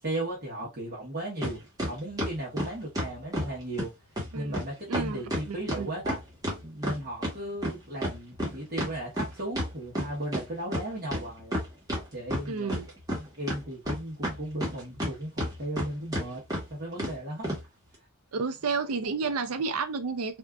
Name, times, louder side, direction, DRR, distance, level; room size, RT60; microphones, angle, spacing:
voice 1, 0.0-3.9 4.3-6.2 6.6-11.6 12.1-12.8 13.2-16.4 16.7-17.5, right 1 dB, 45° right, 1.0 m, -36 dB
sound 1, 1.4-1.5 1.8-3.5 3.8-3.9 4.2-4.3 4.5-4.6 4.9-7.4 7.6-10.4 10.7-10.8 11.1-12.0 12.3-13.2 13.5-15.1 15.4-15.9 16.1-16.2 16.5-16.6 17.0-17.1 17.4-17.6, equal, 15° right, 1.2 m, -30 dB
voice 2, 4.9-5.9 12.5-12.9 18.3-20.4, right 4 dB, 75° right, 0.5 m, -31 dB
3.5 x 2.5 x 2.3 m
head